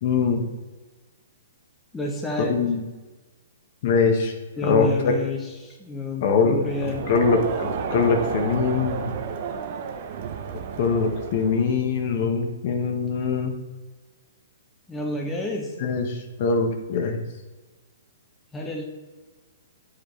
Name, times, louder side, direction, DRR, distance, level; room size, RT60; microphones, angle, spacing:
voice 1, 0.0-0.5 2.4-2.8 3.8-4.3 4.6-5.2 6.2-6.7 7.1-9.0 10.8-13.6 15.8-17.2, left 5 dB, 50° left, 4 dB, 1.1 m, -22 dB
voice 2, 1.9-2.6 4.6-7.1 14.9-15.7 18.5-18.8, left 1 dB, 10° left, 0 dB, 0.9 m, -30 dB
Crowd, 6.6-11.8, right 6 dB, 50° right, 0.7 m, -31 dB
8.5 x 5.0 x 3.2 m, 1.2 s
hypercardioid pair, 140°, 0 cm